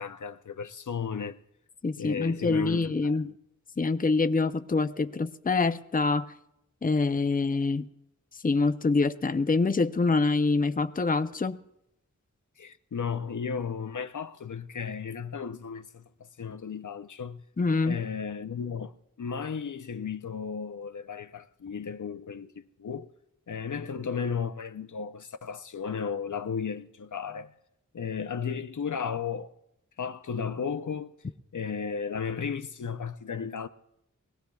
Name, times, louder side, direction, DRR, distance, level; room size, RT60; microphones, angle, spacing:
voice 1, 0.0-1.4 2.0-3.4 12.6-17.4 17.8-18.9 19.2-23.1 23.5-27.5 27.9-29.5 30.0-31.1 31.5-33.7, left 6 dB, 70° left, 0.6 m, -34 dB
voice 2, 1.8-3.3 3.8-6.3 6.8-7.9 8.4-11.6 17.6-18.0, left 3 dB, 25° left, 0.6 m, -25 dB
23.0 x 17.0 x 2.3 m
wide cardioid pair, 50°, 32 cm